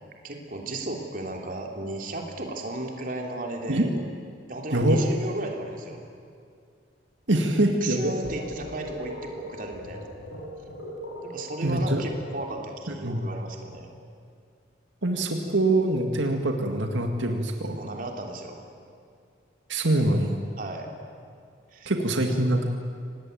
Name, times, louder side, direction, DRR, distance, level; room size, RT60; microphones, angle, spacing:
voice 1, 0.2-3.9 4.5-6.0 7.3-10.1 11.2-13.9 17.7-18.6 20.6-20.9 21.7-21.9, right 2 dB, 45° right, 2 dB, 3.2 m, -35 dB
voice 2, 4.7-5.0 7.3-8.1 11.6-12.0 13.0-13.3 15.0-17.8 19.7-20.4 21.9-22.7, right 1 dB, 85° right, 3 dB, 2.1 m, -24 dB
sound 1, 8.2-12.7, equal, 85° left, 5.3 m, -39 dB
26.0 x 19.0 x 9.3 m, 2.3 s
head